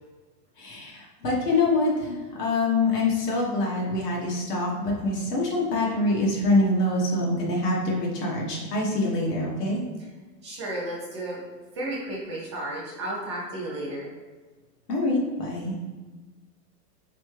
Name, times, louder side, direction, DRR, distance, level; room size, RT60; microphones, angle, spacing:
voice 1, 0.6-9.8 14.9-15.8, left 2 dB, 75° left, -3 dB, 1.2 m, -25 dB
voice 2, 10.4-11.4 11.7-14.1, right 1 dB, 20° right, -5 dB, 0.3 m, -33 dB
3.6 x 3.2 x 3.2 m, 1.3 s
hypercardioid pair, 150°, 48 cm